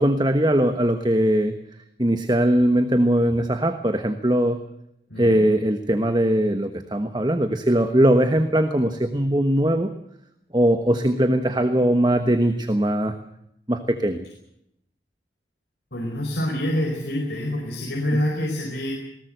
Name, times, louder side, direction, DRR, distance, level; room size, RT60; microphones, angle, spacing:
voice 1, 0.0-1.6 2.0-4.6 5.2-9.9 10.5-13.1 13.7-14.3 18.1-18.2, right 1 dB, 25° right, 8 dB, 1.2 m, -20 dB
voice 2, 5.1-5.4 15.9-18.9, equal, 70° left, 0 dB, 4.9 m, -26 dB
20.5 x 19.0 x 7.8 m, 0.77 s
head